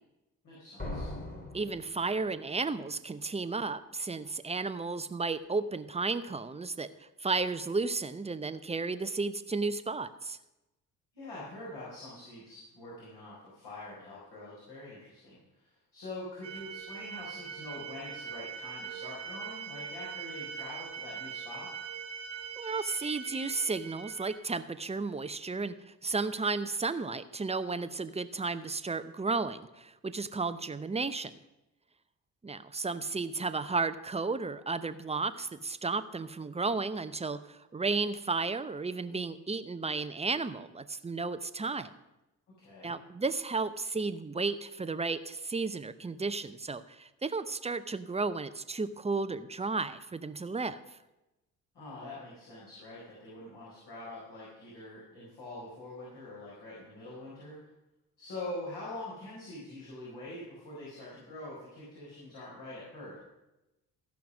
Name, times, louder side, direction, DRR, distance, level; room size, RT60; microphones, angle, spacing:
voice 1, 0.4-1.1 11.1-21.7 42.6-42.9 51.7-57.6 58.2-63.2, left 2 dB, 60° left, -7 dB, 4.7 m, -44 dB
sound 1, 0.8-2.6, left 1 dB, 20° left, 2.6 m, -40 dB
voice 2, 1.5-6.9 7.2-10.4 22.6-25.7 26.0-31.3 32.4-41.9 42.8-50.8, right 4 dB, 15° right, 12 dB, 0.7 m, -33 dB
sound 2, 16.4-24.4, right 7 dB, 70° right, 1.8 m, -42 dB
14.5 x 5.8 x 6.2 m, 0.98 s
hypercardioid pair, 45°, 45 cm